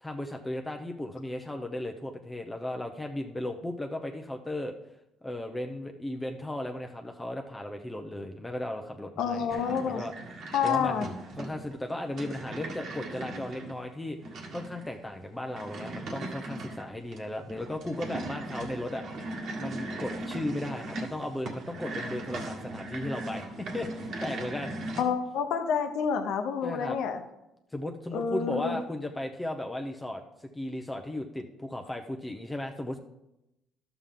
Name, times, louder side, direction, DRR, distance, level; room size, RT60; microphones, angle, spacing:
voice 1, 0.0-4.7 5.2-10.1 10.6-14.2 14.5-19.0 19.6-25.0 26.6-27.0 27.7-33.0, left 1 dB, 10° left, 3 dB, 0.7 m, -36 dB
voice 2, 9.2-10.0 10.5-11.1 25.0-27.2 28.1-28.8, left 6 dB, 75° left, 6 dB, 0.9 m, -28 dB
sound 1, 9.5-25.0, right 2 dB, 65° right, 1.6 m, -39 dB
12.0 x 7.0 x 3.8 m, 0.88 s
cardioid pair, 100°, 0 cm